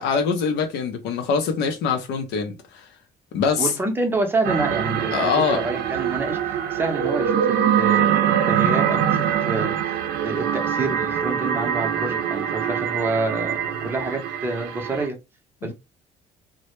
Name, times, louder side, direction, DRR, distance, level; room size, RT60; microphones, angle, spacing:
voice 1, 0.0-2.9 3.3-3.7 5.1-5.6 15.6-15.7, left 5 dB, 80° left, 0.5 m, -23 dB
voice 2, 3.6-10.0 10.2-15.2 15.6-15.7, right 3 dB, 15° right, 0.6 m, -28 dB
sound 1, 4.4-15.1, right 9 dB, 80° right, 0.4 m, -23 dB
2.1 x 2.0 x 2.9 m
cardioid pair, 110°, 17 cm